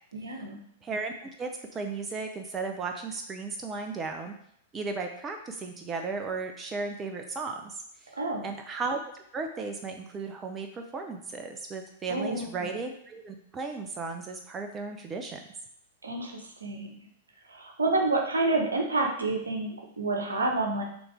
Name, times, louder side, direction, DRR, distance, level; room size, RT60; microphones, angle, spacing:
voice 1, 0.1-0.6 8.2-8.5 12.1-12.7 16.0-17.0 17.5-20.8, right 2 dB, 75° right, 2 dB, 1.1 m, -29 dB
voice 2, 0.8-4.3 4.7-7.7 8.4-9.0 9.3-15.4, right 4 dB, 20° right, 4 dB, 0.7 m, -35 dB
6.1 x 3.3 x 4.9 m, 0.70 s
figure-of-eight pair, 100°, 0 cm